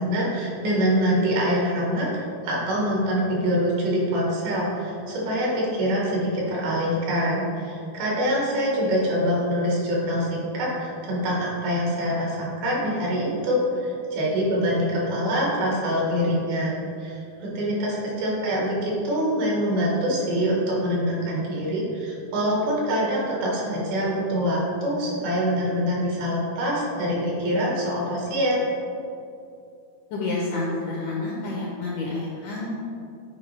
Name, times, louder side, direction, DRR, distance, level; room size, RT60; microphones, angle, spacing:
voice 1, 0.0-16.7 17.0-28.6, equal, 70° right, -4 dB, 3.2 m, -25 dB
voice 2, 30.1-32.7, left 2 dB, 75° left, -4 dB, 1.9 m, -29 dB
10.0 x 4.5 x 3.3 m, 2.6 s
omnidirectional pair, 4.5 m